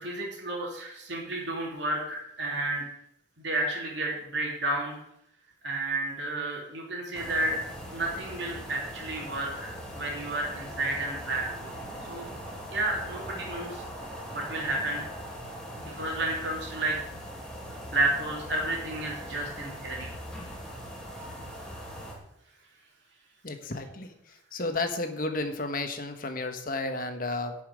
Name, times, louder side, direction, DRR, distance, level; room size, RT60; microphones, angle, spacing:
voice 1, 0.0-2.9 3.4-5.0 5.6-7.6 7.9-11.8 12.1-12.3 12.7-13.8 14.3-15.0 15.7-17.0 17.9-20.1, right 2 dB, 65° right, -2 dB, 3.0 m, -31 dB
sound 1, 7.1-22.1, equal, 5° left, 2.5 m, -41 dB
voice 2, 23.4-24.1 24.5-27.6, left 2 dB, 45° left, 6 dB, 1.3 m, -32 dB
11.5 x 5.8 x 8.6 m, 0.79 s
head